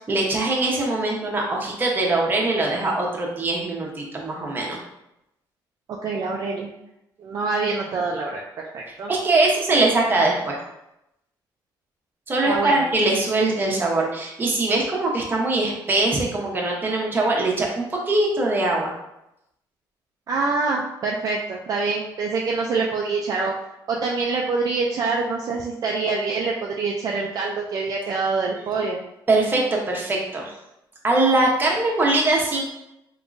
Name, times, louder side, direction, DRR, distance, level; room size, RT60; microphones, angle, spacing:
voice 1, 0.0-4.8 9.1-10.6 12.3-18.9 29.3-30.5 31.0-32.6, right 2 dB, 25° right, -2 dB, 0.9 m, -22 dB
voice 2, 6.0-6.7 7.2-8.4 8.7-9.1 12.5-12.9 20.3-23.5 23.9-29.0, right 4 dB, 50° right, -1 dB, 0.4 m, -25 dB
3.6 x 3.0 x 2.5 m, 0.87 s
cardioid pair, 115°, 8 cm